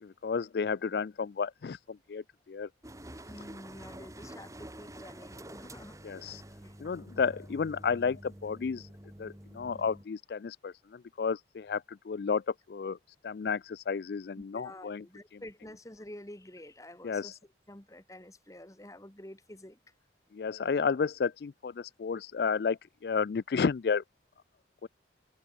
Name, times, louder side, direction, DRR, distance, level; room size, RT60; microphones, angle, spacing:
voice 1, 0.0-2.7 6.0-6.4 6.8-8.9 9.2-13.0 13.2-15.0 17.0-17.4 20.3-24.0 24.8-24.9, left 5 dB, 55° left, 0.4 m, -32 dB
sound 1, 2.8-10.0, right 1 dB, 15° right, 3.1 m, -48 dB
voice 2, 3.3-6.0 6.3-6.7 14.4-17.4 17.7-19.8, left 1 dB, 20° left, 1.6 m, -49 dB
head